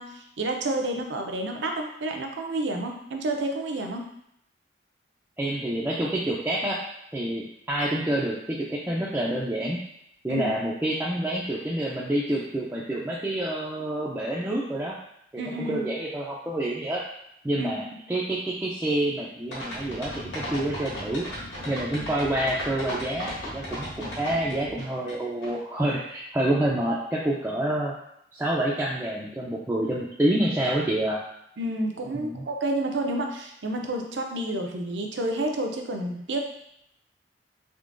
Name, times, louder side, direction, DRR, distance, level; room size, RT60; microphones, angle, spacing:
voice 1, 0.0-4.1 10.3-10.5 15.4-15.8 17.6-17.7 31.6-36.4, right 1 dB, 75° right, 3 dB, 0.5 m, -30 dB
voice 2, 5.4-6.8 7.1-9.8 10.2-15.0 15.3-17.0 17.4-21.3 21.7-27.9 28.3-31.2 32.1-32.4, right 1 dB, 10° right, -6 dB, 0.3 m, -28 dB
sound 1, 19.5-25.1 25.4-25.5, equal, 70° left, 1.1 m, -35 dB
sound 2, 19.7-24.8, left 1 dB, 35° left, 0.6 m, -42 dB
3.6 x 3.3 x 2.5 m, 0.75 s
head